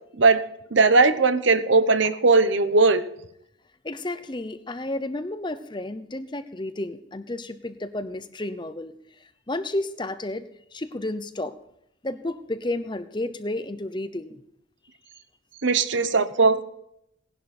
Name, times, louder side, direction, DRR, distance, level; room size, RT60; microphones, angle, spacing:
voice 1, 0.7-3.0 15.6-16.6, right 3 dB, 65° right, 11 dB, 1.0 m, -19 dB
voice 2, 3.8-11.6 12.0-14.4, left 1 dB, 25° left, 11 dB, 0.7 m, -32 dB
18.5 x 11.0 x 4.3 m, 0.76 s
head